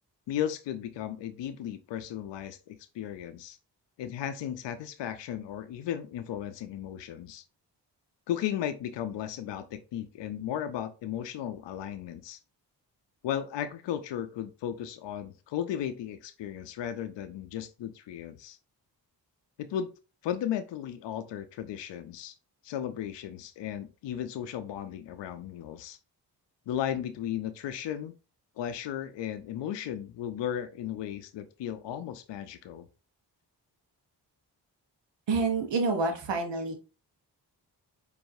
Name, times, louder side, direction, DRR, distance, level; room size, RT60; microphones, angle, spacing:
voice 1, 0.3-3.6 4.0-7.4 8.3-12.4 13.2-18.6 19.6-19.9 20.2-22.4 22.6-26.0 26.7-28.1 28.6-32.9, left 10 dB, 75° left, 11 dB, 0.6 m, -35 dB
voice 2, 35.3-36.8, right 3 dB, 80° right, 4 dB, 1.0 m, -28 dB
4.7 x 2.6 x 2.6 m, 0.32 s
cardioid pair, 50°, 43 cm